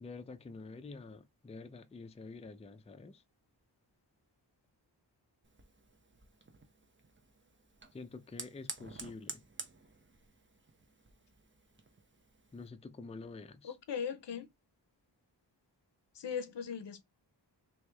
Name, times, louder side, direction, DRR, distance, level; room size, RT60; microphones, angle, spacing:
voice 1, 0.0-3.2 7.9-9.4 12.5-13.8, left 3 dB, 15° left, 0.4 m, -48 dB
Fire, 5.4-12.7, right 3 dB, 25° right, 0.8 m, -51 dB
voice 2, 13.6-14.5 16.1-17.0, left 7 dB, 75° left, 0.7 m, -39 dB
3.2 x 3.1 x 3.3 m
wide cardioid pair, 90°, 43 cm